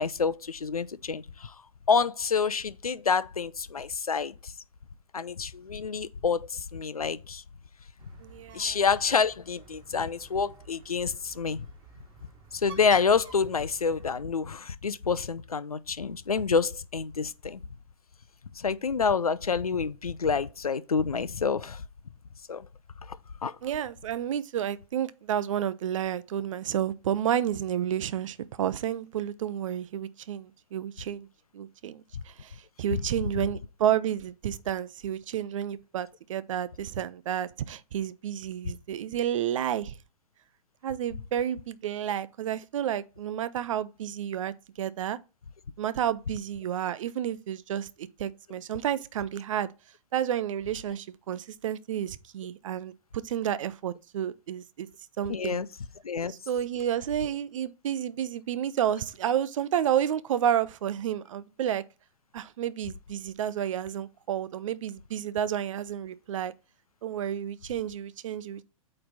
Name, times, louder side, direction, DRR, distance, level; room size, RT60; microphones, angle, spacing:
voice 1, 0.0-1.5 1.9-4.5 5.1-7.4 8.5-11.7 12.5-17.6 18.6-21.8 22.5-22.7 23.1-23.2 23.4-23.5 32.9-33.0 55.3-55.7 56.0-56.3, left 5 dB, 90° left, 0.6 m, -28 dB
Bird, 8.0-14.1, right 5 dB, 25° right, 1.8 m, -49 dB
voice 2, 8.2-8.8 23.6-31.3 31.5-32.5 32.8-39.9 40.8-45.2 45.8-49.7 50.1-54.9 55.2-55.6 56.3-61.8 62.3-66.5 67.0-68.6, right 10 dB, 60° right, 0.6 m, -31 dB
8.5 x 3.3 x 4.0 m
figure-of-eight pair, 110°, 18 cm